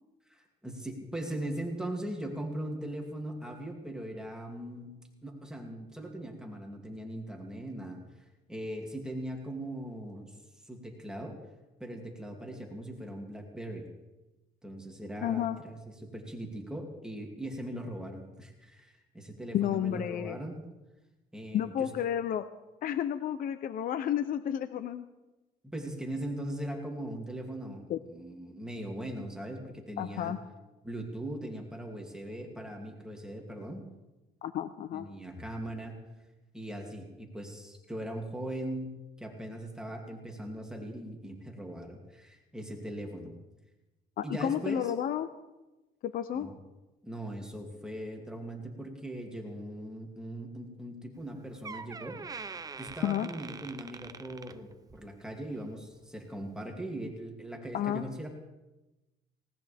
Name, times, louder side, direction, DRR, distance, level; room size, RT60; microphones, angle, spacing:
voice 1, 0.3-5.0 5.2-8.0 8.5-10.3 10.6-11.4 11.8-13.9 14.6-20.6 21.3-21.9 25.6-30.3 30.8-33.8 34.9-35.9 36.5-38.9 39.2-43.3 44.2-44.9 46.3-46.5 47.0-52.2 52.8-58.3, right 1 dB, 5° right, 0 dB, 2.7 m, -40 dB
voice 2, 15.2-15.6 19.5-20.4 21.5-22.4 22.8-25.0 27.9-28.0 30.0-30.4 34.4-35.1 44.2-45.3 46.0-46.5 53.0-53.3 57.7-58.0, left 10 dB, 55° left, 11 dB, 0.7 m, -31 dB
Door, 51.2-51.3 51.6-55.1 55.5-55.8 56.5-56.6, right 4 dB, 20° right, 0.6 m, -44 dB
19.0 x 18.0 x 3.5 m, 1.1 s
cardioid pair, 110°, 17 cm